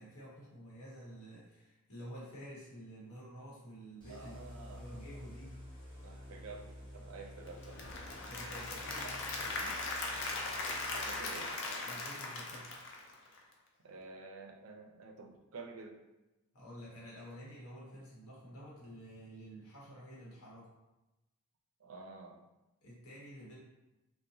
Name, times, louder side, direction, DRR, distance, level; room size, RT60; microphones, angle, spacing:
voice 1, 0.0-5.5 8.2-9.8 11.8-12.7 16.5-20.7 22.8-23.6, equal, 80° left, -6 dB, 0.9 m, -50 dB
sound 1, 4.0-11.6, left 1 dB, 20° left, 0.8 m, -51 dB
voice 2, 4.0-5.3 6.0-7.8 9.0-9.1 11.1-11.5 13.8-16.0 21.8-22.4, right 3 dB, 75° right, 2 dB, 0.4 m, -50 dB
Applause / Crowd, 7.5-13.5, left 2 dB, 55° left, 0.4 m, -39 dB
2.8 x 2.1 x 2.7 m, 1.0 s
head